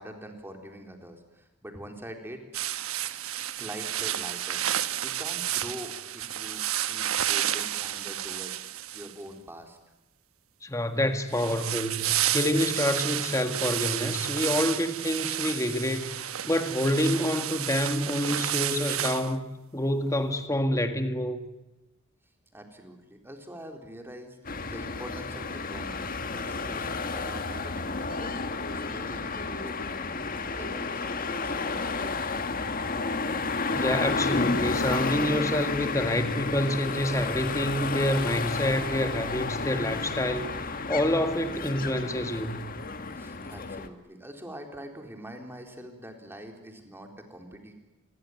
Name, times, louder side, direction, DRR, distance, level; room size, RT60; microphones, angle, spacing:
voice 1, 0.0-2.6 3.6-4.6 5.0-8.6 8.9-9.8 22.5-24.4 24.7-30.2 30.6-32.5 43.2-47.7, equal, 10° right, 4 dB, 4.0 m, -44 dB
sound 1, 2.5-9.3 11.3-19.3, right 12 dB, 85° right, 1.2 m, -31 dB
voice 2, 10.6-19.4 19.7-21.4 33.7-40.5 40.9-42.7, left 1 dB, 15° left, 7 dB, 1.8 m, -27 dB
sound 2, 24.4-43.9, left 4 dB, 40° left, 1.6 m, -31 dB
27.5 x 22.5 x 9.4 m, 1.0 s
head